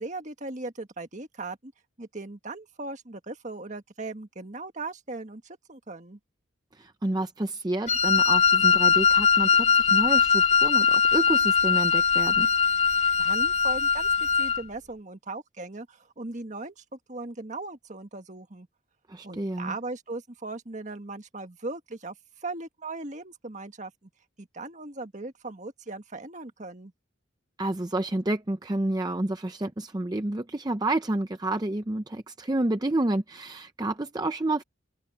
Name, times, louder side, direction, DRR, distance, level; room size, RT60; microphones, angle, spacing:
voice 1, 0.0-1.7 2.0-6.2 13.2-18.7 19.2-24.1 24.4-26.9, right 2 dB, 40° right, 1.7 m, -38 dB
voice 2, 6.7-12.5 19.1-19.7 27.6-34.6, right 2 dB, 20° right, 0.6 m, -29 dB
Wind instrument woodwind instrument, 7.9-14.6, left 6 dB, 35° left, 1.2 m, -21 dB
head